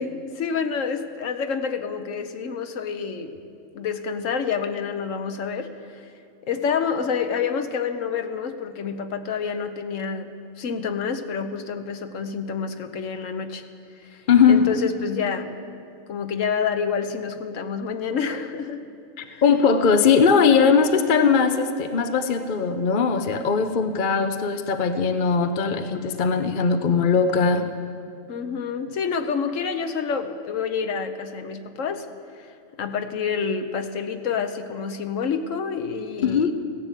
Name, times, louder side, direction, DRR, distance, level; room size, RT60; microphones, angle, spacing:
voice 1, 0.0-3.4 3.7-6.1 6.4-10.3 10.6-13.6 14.0-15.6 16.1-18.9 19.2-19.4 20.4-20.8 28.3-32.1 32.3-36.5, left 6 dB, 75° left, 8 dB, 1.3 m, -28 dB
voice 2, 14.3-14.7 19.2-27.7 36.2-36.5, left 5 dB, 45° left, 8 dB, 0.8 m, -20 dB
16.0 x 10.5 x 8.2 m, 2.4 s
omnidirectional pair, 1.3 m